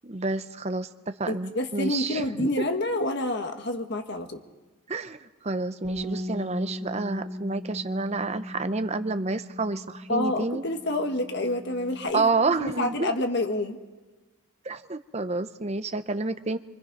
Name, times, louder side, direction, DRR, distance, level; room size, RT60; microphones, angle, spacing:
voice 1, 0.0-0.9 1.2-2.5 4.9-10.6 12.1-13.1 14.6-16.6, right 3 dB, 30° right, 10 dB, 0.7 m, -29 dB
voice 2, 1.3-4.4 10.1-13.8, left 1 dB, 55° left, 5 dB, 1.6 m, -28 dB
Bass guitar, 5.8-12.1, equal, 20° left, 5.9 m, -38 dB
25.0 x 24.0 x 5.3 m, 1.2 s
head